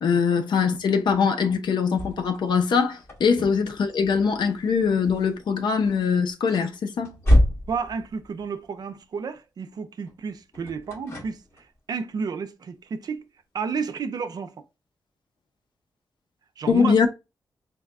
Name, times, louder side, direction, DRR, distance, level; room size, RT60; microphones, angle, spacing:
voice 1, 0.0-7.2 16.7-17.1, left 6 dB, 85° left, 0.6 m, -22 dB
sound 1, 0.8-9.0 10.1-11.8, left 1 dB, 35° left, 1.4 m, -29 dB
voice 2, 7.7-13.3 13.5-14.5 16.6-17.1, right 5 dB, 60° right, 0.5 m, -32 dB
4.0 x 2.2 x 3.5 m
wide cardioid pair, 135°, 8 cm